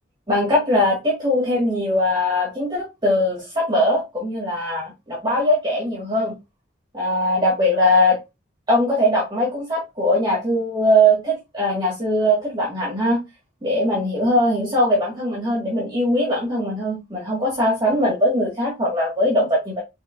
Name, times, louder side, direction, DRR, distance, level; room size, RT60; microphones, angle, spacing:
voice 1, 0.3-6.3 6.9-8.2 8.7-13.2 13.6-19.8, equal, 20° right, 1.6 m, -20 dB
4.9 x 3.5 x 2.5 m
head